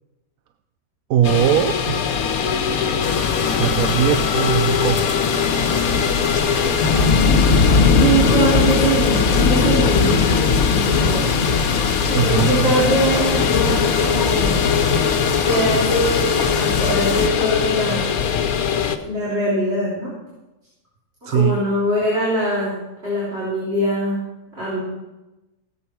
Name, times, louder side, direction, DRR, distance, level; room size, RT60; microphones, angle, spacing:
voice 1, 1.1-2.0 3.6-5.1 12.1-12.7 21.2-21.6, right 10 dB, 85° right, 9 dB, 1.1 m, -20 dB
sound 1, 1.2-19.0, left 7 dB, 90° left, 1.3 m, -22 dB
sound 2, 3.0-17.3, left 4 dB, 60° left, 1.4 m, -21 dB
voice 2, 8.0-11.6 12.1-14.7 15.4-18.2 19.0-20.1 21.2-22.8 23.0-24.2 24.6-24.8, right 1 dB, 45° right, -8 dB, 4.0 m, -22 dB
17.0 x 8.5 x 4.6 m, 1.0 s
omnidirectional pair, 1.5 m